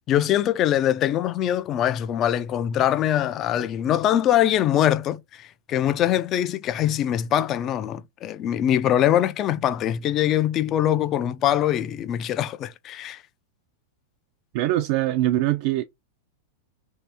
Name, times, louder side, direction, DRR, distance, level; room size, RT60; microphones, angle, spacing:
voice 1, 0.1-13.2, left 11 dB, 35° left, 0.3 m, -23 dB
voice 2, 14.5-15.8, right 15 dB, 55° right, 0.3 m, -22 dB
2.7 x 2.4 x 3.3 m
hypercardioid pair, 130°, 0 cm